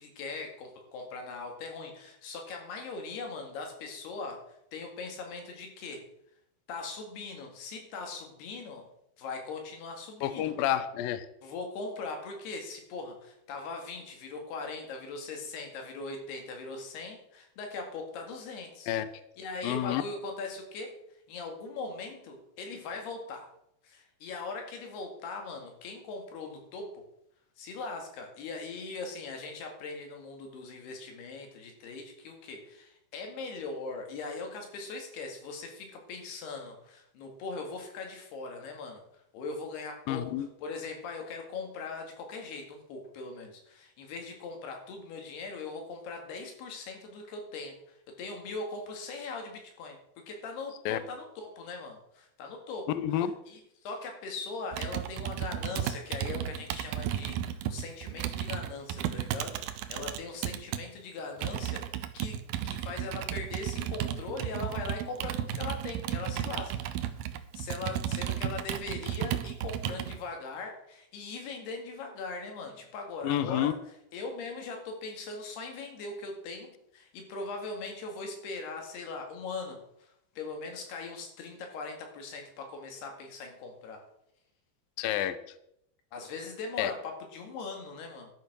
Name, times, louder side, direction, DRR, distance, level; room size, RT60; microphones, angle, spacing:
voice 1, 0.0-6.1 6.7-8.9 9.2-10.6 11.4-18.9 19.4-21.0 21.3-23.5 23.8-27.0 27.6-39.0 39.3-50.0 50.3-62.4 62.6-67.2 67.5-73.8 74.1-84.0 86.1-88.3, left 3 dB, 65° left, 3 dB, 4.0 m, -40 dB
voice 2, 10.2-11.3 18.9-19.1 19.6-20.0 40.1-40.5 50.9-51.0 52.9-53.3 73.2-73.7 85.0-85.4 86.8-86.9, left 11 dB, 85° left, 13 dB, 2.0 m, -29 dB
Computer keyboard, 54.7-60.8 61.4-70.2, right 11 dB, 85° right, 2.1 m, -34 dB
12.0 x 6.9 x 6.2 m, 0.76 s
omnidirectional pair, 5.1 m